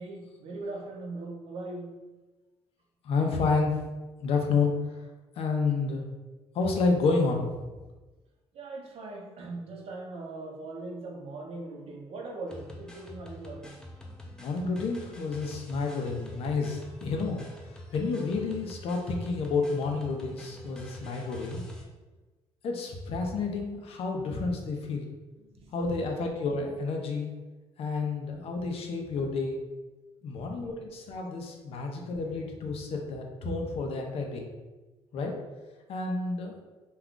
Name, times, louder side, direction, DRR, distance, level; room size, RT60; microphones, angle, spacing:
voice 1, 0.0-2.1 8.5-13.8 25.4-25.7 30.4-30.8 31.7-31.8, right 2 dB, 65° right, 1 dB, 0.6 m, -40 dB
voice 2, 3.0-3.8 4.2-5.0 5.4-6.0 6.5-7.5 14.4-17.4 17.9-21.6 22.6-25.0 25.7-27.3 27.8-29.6 30.2-34.5 35.1-35.3 35.9-36.6, left 4 dB, 65° left, 2 dB, 0.5 m, -30 dB
sound 1, 12.5-21.8, left 1 dB, 5° left, 0.5 m, -46 dB
2.3 x 2.3 x 3.6 m, 1.2 s
cardioid pair, 100°, 11 cm